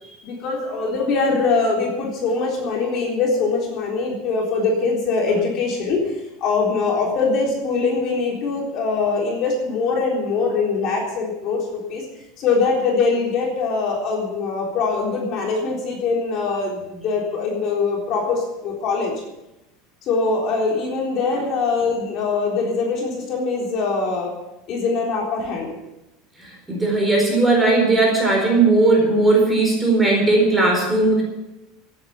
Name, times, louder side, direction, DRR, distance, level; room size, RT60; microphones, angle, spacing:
voice 1, 0.2-12.0 12.4-19.1 20.0-24.3 24.7-25.7, left 4 dB, 40° left, -1 dB, 3.8 m, -22 dB
voice 2, 26.4-31.2, right 2 dB, 5° right, -1 dB, 4.5 m, -17 dB
16.0 x 9.1 x 7.1 m, 0.93 s
supercardioid pair, 165°, 0 cm